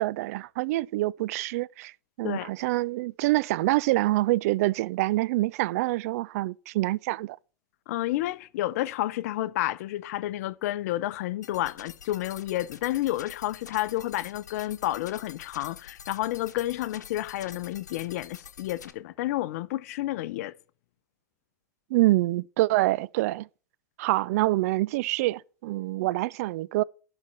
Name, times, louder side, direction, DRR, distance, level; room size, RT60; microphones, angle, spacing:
voice 1, 0.0-1.9 2.2-7.4 21.9-23.5 24.0-26.8, right 18 dB, 60° right, 0.4 m, -26 dB
voice 2, 7.9-20.5, left 15 dB, 65° left, 0.6 m, -30 dB
sound 1, 11.4-18.9, left 7 dB, 85° left, 1.0 m, -47 dB
11.5 x 4.3 x 7.2 m
hypercardioid pair, 90°, 9 cm